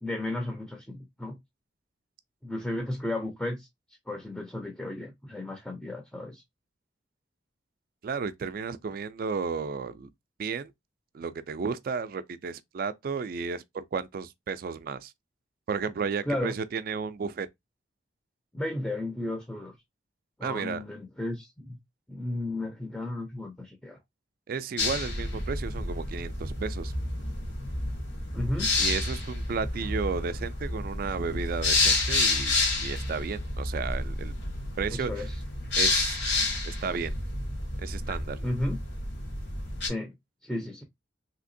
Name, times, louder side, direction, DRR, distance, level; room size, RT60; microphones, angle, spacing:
voice 1, 0.0-1.4 2.4-3.7 4.1-6.4 16.3-16.5 18.5-19.7 20.4-21.8 22.1-24.0 28.3-28.7 34.9-35.4 38.4-38.8 39.9-40.1 40.4-40.8, left 1 dB, 5° left, 0.5 m, -33 dB
voice 2, 8.0-10.1 10.4-10.7 11.1-15.1 15.7-17.5 20.4-20.8 24.5-26.9 28.8-34.3 34.8-35.1 35.7-36.2 36.6-37.1 37.8-38.4, right 5 dB, 50° right, 0.3 m, -33 dB
sound 1, 24.8-39.9, left 2 dB, 65° left, 1.2 m, -30 dB
3.4 x 2.9 x 2.6 m
head